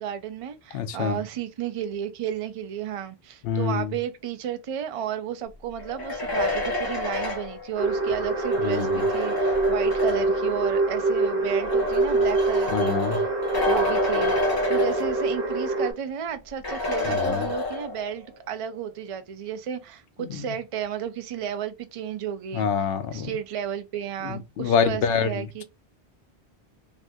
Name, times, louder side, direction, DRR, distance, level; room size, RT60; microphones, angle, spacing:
voice 1, 0.0-13.2 13.7-14.3 14.7-22.7 23.1-25.6, right 9 dB, 60° right, 0.3 m, -33 dB
voice 2, 0.7-1.2 3.4-3.9 8.6-9.1 12.7-13.2 17.1-17.5 20.3-20.4 22.5-23.3 24.2-25.6, left 6 dB, 70° left, 0.7 m, -26 dB
sound 1, 5.8-10.5 11.4-15.6 15.9-16.0 16.6-18.2, left 2 dB, 25° left, 0.8 m, -29 dB
sound 2, 7.8-15.9, right 2 dB, 40° right, 1.2 m, -25 dB
2.6 x 2.5 x 3.4 m
omnidirectional pair, 1.1 m